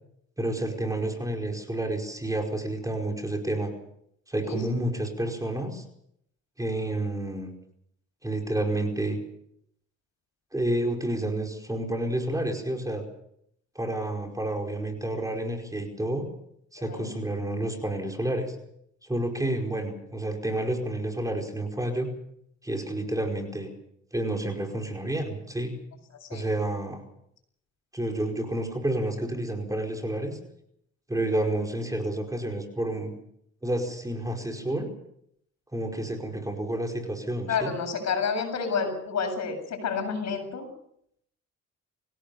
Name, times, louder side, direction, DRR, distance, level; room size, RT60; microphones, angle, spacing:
voice 1, 0.4-3.7 4.3-5.8 6.6-7.5 8.2-9.2 10.5-13.0 13.7-16.3 16.7-18.6 19.0-22.1 22.6-23.7 24.1-25.7 26.3-27.0 27.9-30.4 31.1-33.1 33.6-34.9 35.7-37.7, right 1 dB, 10° right, 2 dB, 4.9 m, -30 dB
voice 2, 37.5-40.7, left 5 dB, 65° left, 5 dB, 7.7 m, -29 dB
25.5 x 17.5 x 7.1 m, 0.72 s
cardioid pair, 90°, 30 cm